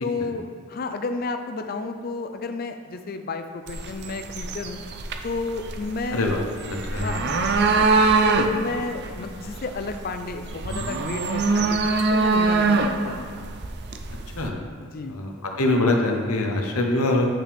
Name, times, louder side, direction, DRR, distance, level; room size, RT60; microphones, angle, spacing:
voice 1, 0.0-4.8 5.2-6.3 6.9-7.9 8.2-13.3 14.8-15.2, left 3 dB, 40° left, 7 dB, 0.4 m, -31 dB
sound 1, 3.7-14.5, right 3 dB, 50° right, 0.5 m, -24 dB
voice 2, 6.1-7.1 14.4-14.5 15.1-15.3 15.6-17.3, left 2 dB, 80° left, 2 dB, 1.0 m, -23 dB
8.9 x 5.8 x 3.5 m, 2.1 s
head